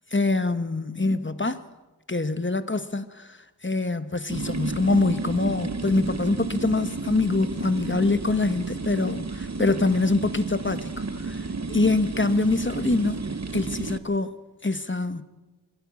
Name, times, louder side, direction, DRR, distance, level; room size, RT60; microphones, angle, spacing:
voice 1, 0.1-1.6 2.1-3.3 3.6-10.9 11.2-11.4 11.7-13.2 13.5-14.4 14.6-15.2, left 3 dB, 30° left, 1.3 m, -24 dB
sound 1, 4.3-14.0, right 3 dB, 40° right, 1.0 m, -32 dB
22.5 x 15.5 x 8.5 m
wide cardioid pair, 50°, 41 cm